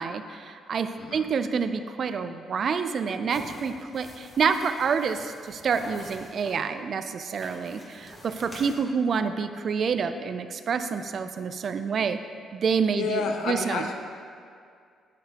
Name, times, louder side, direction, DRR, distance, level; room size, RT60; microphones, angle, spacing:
voice 1, 0.0-12.2 12.5-13.9, right 6 dB, 55° right, 9 dB, 0.4 m, -28 dB
sound 1, 3.3-6.6 7.3-8.8, equal, 20° left, 1.5 m, -46 dB
voice 2, 13.0-13.9, left 4 dB, 80° left, 4 dB, 0.6 m, -29 dB
7.4 x 6.7 x 2.9 m, 2.2 s
cardioid pair, 90°, 0 cm